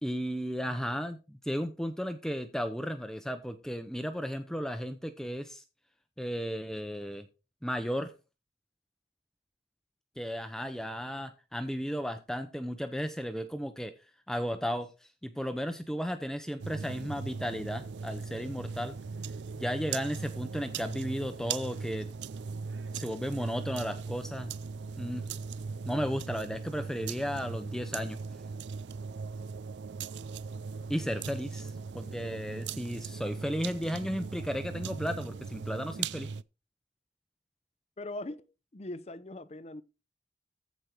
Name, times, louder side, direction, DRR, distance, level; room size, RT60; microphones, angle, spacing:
voice 1, 0.0-5.6 6.2-7.3 7.6-8.1 10.2-13.9 14.3-14.9 15.2-18.9 19.6-22.1 22.9-24.5 25.0-25.3 25.8-28.2 30.9-36.3, equal, 5° left, 0.7 m, -34 dB
sound 1, 16.6-36.4, right 5 dB, 85° right, 0.4 m, -39 dB
voice 2, 38.0-39.8, left 1 dB, 35° left, 0.7 m, -41 dB
14.5 x 5.3 x 4.6 m
head